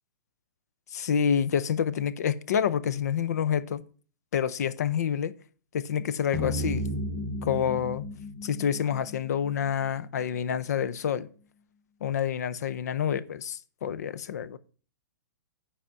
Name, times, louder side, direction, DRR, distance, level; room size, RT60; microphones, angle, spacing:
voice 1, 0.9-3.8 4.3-5.3 5.7-6.9 7.4-8.0 8.4-11.3 12.0-14.6, left 8 dB, 60° left, 0.6 m, -28 dB
sound 1, 6.3-10.7, left 1 dB, 10° right, 1.0 m, -35 dB
7.8 x 4.9 x 6.9 m
hypercardioid pair, 175°, 10 cm